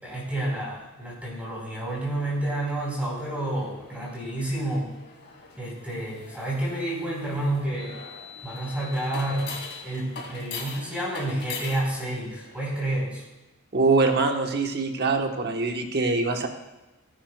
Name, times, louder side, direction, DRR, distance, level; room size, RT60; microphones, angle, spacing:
voice 1, 0.0-4.9 5.6-8.1 8.4-9.5 9.8-13.2, right 1 dB, 5° right, -5 dB, 4.1 m, -29 dB
sound 1, 1.9-13.0, left 4 dB, 55° left, 2.6 m, -42 dB
voice 2, 13.7-16.5, right 3 dB, 50° right, 4 dB, 1.2 m, -23 dB
19.5 x 9.8 x 2.3 m, 1.1 s
head